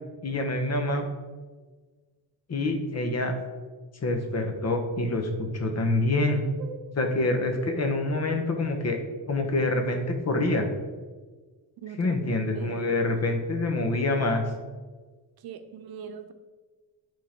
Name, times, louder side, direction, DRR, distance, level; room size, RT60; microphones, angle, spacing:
voice 1, 0.2-1.1 2.5-3.3 4.0-6.4 7.0-9.0 9.3-10.7 12.0-14.5, left 2 dB, 40° left, 4 dB, 1.2 m, -26 dB
voice 2, 11.8-13.0 15.4-16.3, right 7 dB, 70° right, 8 dB, 0.8 m, -41 dB
8.5 x 3.9 x 5.2 m, 1.4 s
cardioid pair, 120°, 38 cm